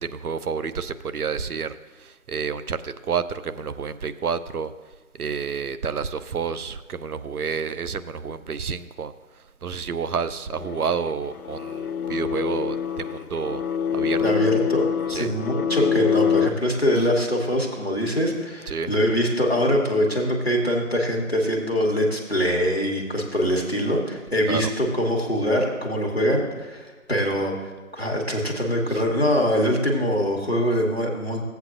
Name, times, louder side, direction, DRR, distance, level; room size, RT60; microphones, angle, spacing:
voice 1, 0.0-4.7 5.2-9.1 9.6-13.6 13.9-14.2 15.1-15.3 18.7-18.9 24.5-24.7, right 6 dB, 85° right, 13 dB, 0.6 m, -29 dB
sound 1, 10.5-16.5, left 8 dB, 80° left, 0.5 m, -25 dB
voice 2, 14.2-31.4, equal, 45° left, -1 dB, 1.2 m, -23 dB
15.0 x 8.0 x 2.5 m, 1.3 s
figure-of-eight pair, 180°, 43 cm